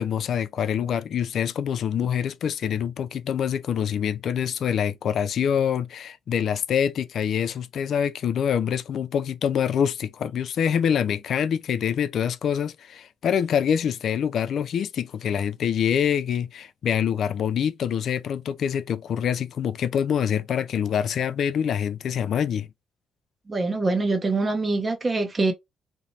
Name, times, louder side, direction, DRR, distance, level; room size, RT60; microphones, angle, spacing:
voice 1, 0.0-22.7, left 8 dB, 65° left, 0.3 m, -25 dB
voice 2, 23.5-25.5, right 3 dB, 30° right, 0.6 m, -24 dB
3.0 x 2.0 x 2.6 m
cardioid pair, 90°, 0 cm